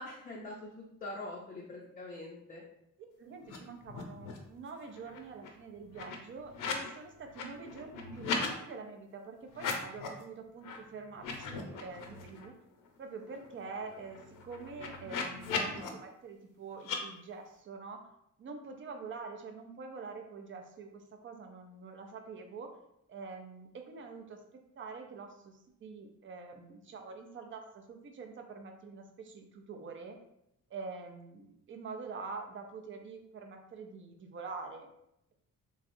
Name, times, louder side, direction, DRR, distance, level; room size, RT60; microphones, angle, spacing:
voice 1, 0.0-2.6, left 2 dB, 25° left, -3 dB, 0.5 m, -44 dB
voice 2, 3.2-12.6 13.0-18.0 18.4-22.7 23.1-24.4 24.8-30.2 30.7-34.9, right 4 dB, 40° right, 4 dB, 0.5 m, -46 dB
sound 1, 3.4-3.6 3.8-4.5 4.8-6.9 7.2-8.5 9.5-10.2 10.6-10.8 11.1-12.5 12.9-13.0 13.2-15.9 16.8-17.0, left 5 dB, 70° left, 0.6 m, -38 dB
3.6 x 3.1 x 2.6 m, 0.79 s
wide cardioid pair, 165°, 33 cm